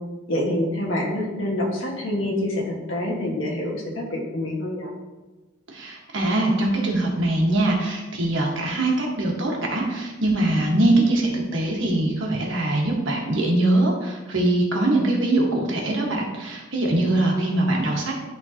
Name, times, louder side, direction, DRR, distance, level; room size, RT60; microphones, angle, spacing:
voice 1, 0.3-4.9 17.0-17.4, left 1 dB, 70° left, -2 dB, 1.6 m, -27 dB
voice 2, 5.7-18.1, right 1 dB, 60° right, -1 dB, 1.4 m, -22 dB
11.0 x 3.7 x 2.9 m, 1.1 s
head